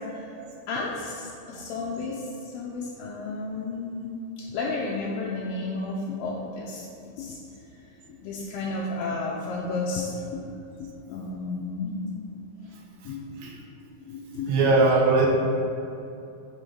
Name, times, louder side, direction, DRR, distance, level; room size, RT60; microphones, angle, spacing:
voice 1, 0.7-2.2 2.5-4.1 4.5-6.9 7.1-7.4 8.2-10.4 10.8-12.0 13.1-13.5 14.1-14.6, left 3 dB, 80° left, -4 dB, 2.2 m, -32 dB
voice 2, 14.5-15.3, right 3 dB, 80° right, -1 dB, 2.3 m, -20 dB
7.6 x 3.6 x 5.2 m, 2.7 s
omnidirectional pair, 4.5 m